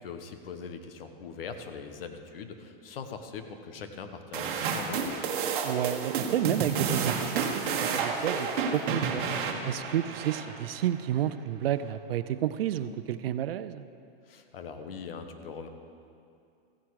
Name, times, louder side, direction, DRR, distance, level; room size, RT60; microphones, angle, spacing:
voice 1, 0.0-5.2 14.3-15.7, left 5 dB, 75° left, 7 dB, 1.2 m, -41 dB
sound 1, 4.3-10.9, right 6 dB, 60° right, 1.4 m, -31 dB
voice 2, 5.6-9.2 9.6-13.8, right 11 dB, 80° right, 13 dB, 0.6 m, -30 dB
15.0 x 9.5 x 4.8 m, 2.5 s
supercardioid pair, 170°, 29 cm